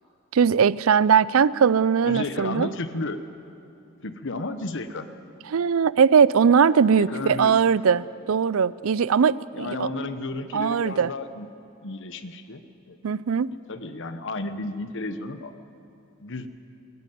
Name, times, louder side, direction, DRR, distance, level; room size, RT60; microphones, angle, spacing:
voice 1, 0.3-2.7 5.5-9.9 10.5-11.1 13.0-13.5, right 6 dB, 65° right, 19 dB, 0.4 m, -20 dB
voice 2, 2.0-3.2 4.0-5.1 7.0-7.7 9.5-11.5 11.8-12.6 12.9-13.0 13.7-15.5 16.2-16.5, left 2 dB, 55° left, 10 dB, 1.1 m, -32 dB
21.0 x 14.5 x 9.3 m, 2.8 s
head